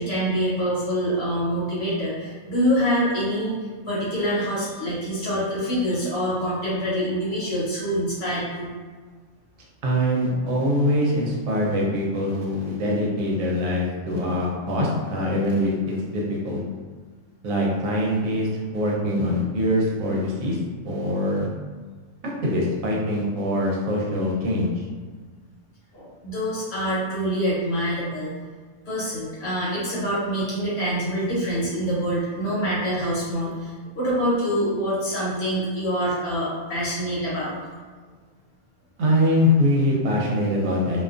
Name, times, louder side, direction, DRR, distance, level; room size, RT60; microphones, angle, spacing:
voice 1, 0.0-3.6 3.8-8.7 25.9-28.3 28.9-37.5, equal, 55° left, -8 dB, 1.0 m, -25 dB
voice 2, 9.8-16.6 17.4-20.6 20.8-21.5 22.4-24.8 39.0-41.0, left 1 dB, 70° right, -3 dB, 1.0 m, -23 dB
2.6 x 2.3 x 2.4 m, 1.5 s
omnidirectional pair, 1.5 m